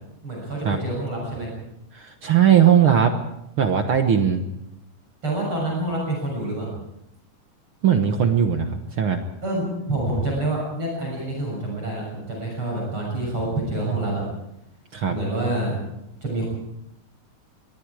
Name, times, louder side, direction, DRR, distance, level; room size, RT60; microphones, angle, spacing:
voice 1, 0.2-1.5 5.2-6.7 9.4-14.2 15.1-15.8 16.2-16.5, right 1 dB, 35° right, -2 dB, 7.9 m, -27 dB
voice 2, 1.9-3.1 3.6-4.4 7.8-9.2 14.9-15.1, right 8 dB, 55° right, 6 dB, 1.5 m, -19 dB
25.5 x 21.0 x 4.9 m, 0.81 s
omnidirectional pair, 3.9 m